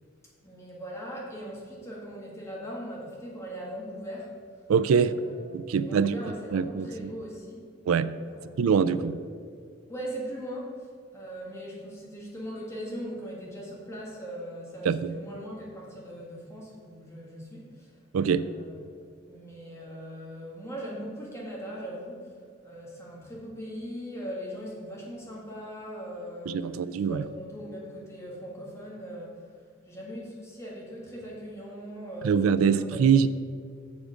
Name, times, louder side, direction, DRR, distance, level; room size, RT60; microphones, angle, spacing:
voice 1, 0.4-4.4 5.0-7.6 8.3-9.1 9.9-10.7 11.1-17.9 18.3-19.0 19.3-22.3 22.6-29.5 29.9-33.0, equal, 15° left, -4 dB, 1.7 m, -40 dB
voice 2, 4.7-5.1 5.5-6.2 6.5-7.1 7.9-8.1 8.6-9.2 14.8-15.1 18.1-18.4 26.5-27.3 32.2-33.3, right 6 dB, 85° right, 15 dB, 0.4 m, -24 dB
7.1 x 6.4 x 5.0 m, 2.1 s
head